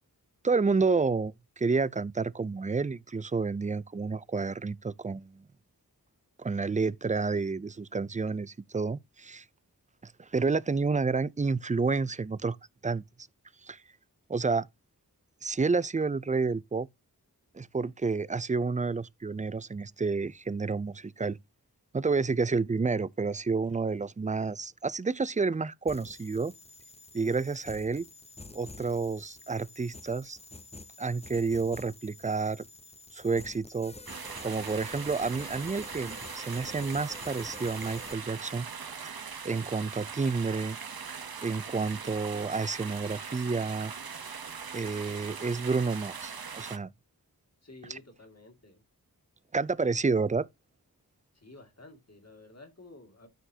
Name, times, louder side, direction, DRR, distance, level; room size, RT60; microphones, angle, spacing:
voice 1, 0.4-5.4 6.4-9.4 10.0-12.6 12.8-13.0 13.6-13.8 14.3-14.7 15.4-16.9 17.5-21.4 21.9-26.5 27.1-28.1 28.5-30.4 31.0-32.6 33.1-33.9 34.4-38.7 39.0-40.8 41.4-43.9 44.7-46.9 47.9-48.0 49.5-50.5, right 4 dB, 20° right, 0.4 m, -30 dB
sound 1, 25.9-38.1, left 2 dB, 15° left, 0.6 m, -48 dB
sound 2, 34.1-46.8, right 6 dB, 75° right, 0.9 m, -41 dB
voice 2, 47.6-48.8 51.3-53.3, left 2 dB, 45° left, 2.2 m, -52 dB
13.0 x 4.5 x 2.7 m
wide cardioid pair, 55°, 36 cm